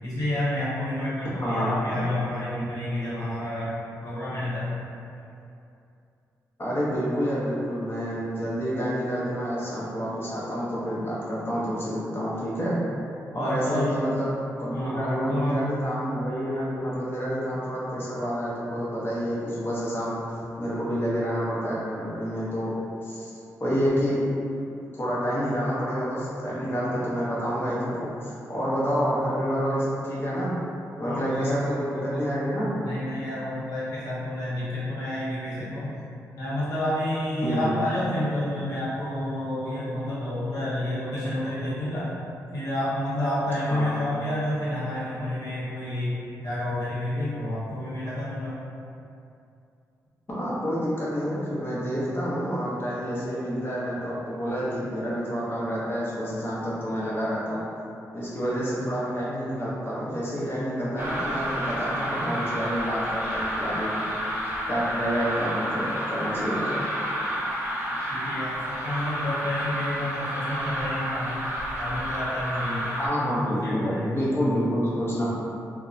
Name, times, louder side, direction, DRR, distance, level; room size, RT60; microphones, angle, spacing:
voice 1, 0.0-3.7 4.0-4.7 13.3-14.0 14.7-15.6 31.0-32.2 32.8-35.9 36.4-42.1 42.5-48.5 68.1-71.4 71.8-72.9 73.3-74.2, left 1 dB, 70° left, -9 dB, 0.9 m, -29 dB
voice 2, 1.4-2.0 6.6-12.8 13.3-14.3 14.6-20.1 20.6-22.7 23.0-23.3 23.6-24.3 24.9-30.5 31.0-32.7 37.4-37.8 43.7-44.0 50.3-57.7 58.1-64.1 64.7-66.8 73.0-75.5, equal, 35° left, -8 dB, 0.8 m, -28 dB
sound 1, 61.0-73.1, equal, 30° right, 0.8 m, -30 dB
2.7 x 2.1 x 2.4 m, 2.6 s
cardioid pair, 75°, 6 cm